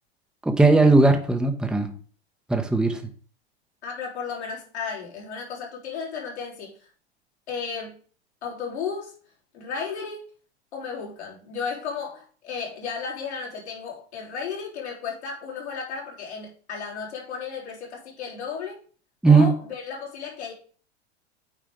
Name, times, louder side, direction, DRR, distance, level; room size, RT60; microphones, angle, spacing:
voice 1, 0.4-1.9 2.5-3.0 19.2-19.5, right 3 dB, ahead, 0.9 m, -18 dB
voice 2, 3.8-6.7 7.5-8.0 8.4-9.1 9.5-10.3 10.7-18.8 19.3-20.5, left 6 dB, 75° left, 3.5 m, -34 dB
8.9 x 4.7 x 3.6 m
hypercardioid pair, 100°, 33 cm